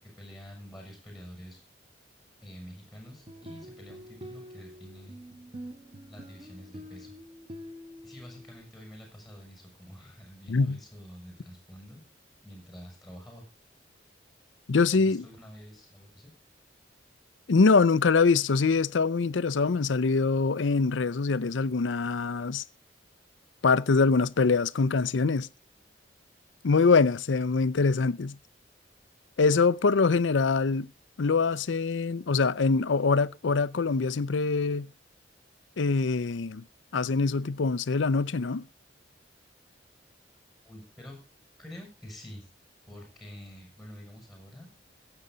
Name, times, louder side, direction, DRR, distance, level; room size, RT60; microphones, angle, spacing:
voice 1, 0.0-1.6 2.4-5.2 6.1-7.2 8.0-12.0 12.4-13.4 14.9-16.3 40.6-41.2 41.6-42.4 42.9-44.7, equal, ahead, 6.7 m, -47 dB
sound 1, 3.1-8.6, equal, 30° right, 1.6 m, -46 dB
voice 2, 10.5-10.8 14.7-15.2 17.5-22.6 23.6-25.5 26.6-28.4 29.4-30.9 31.2-34.9 35.8-36.6 36.9-38.6, left 4 dB, 85° left, 0.6 m, -24 dB
22.0 x 7.9 x 3.9 m
head